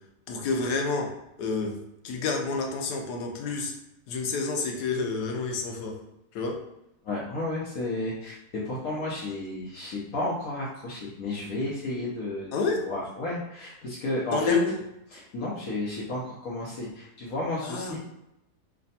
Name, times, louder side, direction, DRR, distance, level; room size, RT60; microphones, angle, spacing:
voice 1, 0.3-1.1 1.4-1.8 2.0-3.7 4.1-6.0 6.3-6.6 12.5-12.8 14.3-14.7 17.6-18.0, left 4 dB, 90° left, 3 dB, 1.2 m, -28 dB
voice 2, 7.0-14.6 15.1-18.0, left 2 dB, 65° left, -5 dB, 1.2 m, -32 dB
3.3 x 2.2 x 4.0 m, 0.85 s
omnidirectional pair, 1.7 m